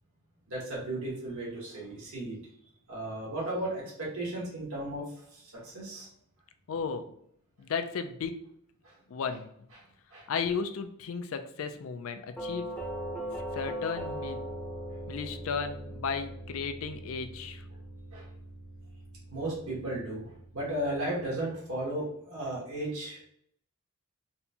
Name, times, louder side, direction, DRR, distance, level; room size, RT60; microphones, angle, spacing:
voice 1, 0.5-2.4 2.9-5.0 5.3-6.1 8.8-8.9 10.1-10.3 18.1-18.2 19.3-23.2, right 1 dB, 75° right, -6 dB, 1.4 m, -35 dB
voice 2, 6.7-7.2 7.6-8.4 9.1-9.5 10.3-12.7 13.5-14.5 15.1-17.6, left 5 dB, 65° left, 9 dB, 0.4 m, -34 dB
Doorbell, 12.4-21.2, equal, 10° left, 0.6 m, -40 dB
4.2 x 2.2 x 2.7 m, 0.70 s
head